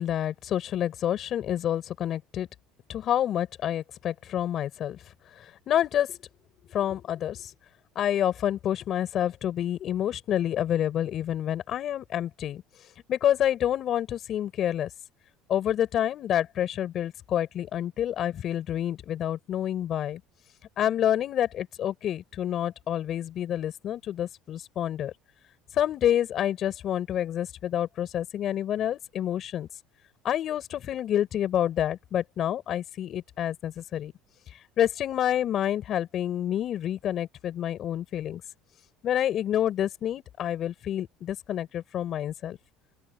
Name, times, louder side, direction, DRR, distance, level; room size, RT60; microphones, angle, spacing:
voice 1, 0.0-2.5 2.9-5.0 5.4-6.2 6.7-7.5 7.9-12.6 13.1-14.9 15.5-20.2 20.8-25.1 25.7-29.7 30.2-34.1 34.8-38.4 39.0-42.6, left 11 dB, 45° left, 6.1 m, -28 dB
open air
cardioid pair, 125°, 0 cm